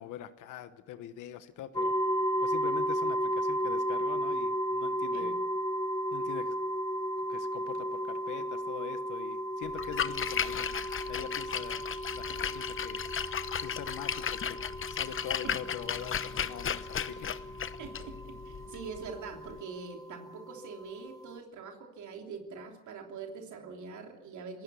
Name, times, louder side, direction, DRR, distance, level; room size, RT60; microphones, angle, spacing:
voice 1, 0.0-1.9 2.4-5.3 6.1-6.6 7.3-10.7 11.1-13.0 13.5-14.6 14.9-17.3, left 11 dB, 90° left, 11 dB, 1.2 m, -43 dB
sound 1, 1.7-21.4, equal, 10° left, 1.1 m, -34 dB
Splash splatter, 9.7-19.6, left 8 dB, 45° left, 1.0 m, -35 dB
voice 2, 17.8-24.6, right 5 dB, 75° right, 3 dB, 3.3 m, -44 dB
27.0 x 16.5 x 7.0 m, 0.92 s
cardioid pair, 90°, 30 cm